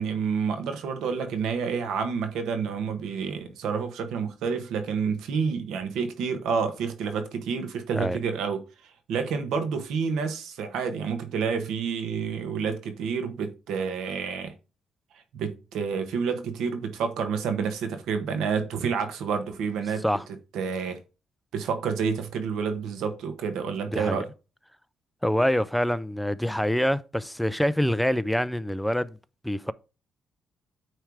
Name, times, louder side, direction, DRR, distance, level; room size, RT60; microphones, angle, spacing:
voice 1, 0.0-8.6 9.1-14.5 15.3-20.0 20.5-21.0 21.5-24.3, right 6 dB, 90° right, 1.4 m, -29 dB
voice 2, 23.9-24.2 25.2-29.2 29.4-29.7, equal, ahead, 0.4 m, -25 dB
9.1 x 3.3 x 4.8 m
cardioid pair, 115°, 0 cm